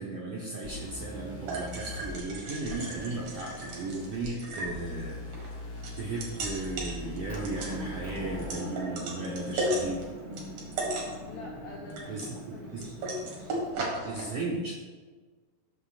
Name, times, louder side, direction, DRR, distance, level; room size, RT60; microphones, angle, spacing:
voice 1, 0.0-5.4 6.0-10.0 12.1-12.9 14.0-14.8, right 2 dB, 80° right, -4 dB, 1.8 m, -36 dB
sound 1, 0.6-8.6, left 2 dB, 65° left, 1.2 m, -42 dB
sound 2, 0.9-14.2, right 1 dB, 60° right, 2.8 m, -37 dB
Motor vehicle (road) / Engine, 7.3-13.7, equal, 35° right, 1.4 m, -42 dB
voice 2, 11.3-14.2, left 3 dB, 90° left, -4 dB, 1.4 m, -48 dB
14.0 x 6.2 x 2.4 m, 1.4 s
omnidirectional pair, 4.8 m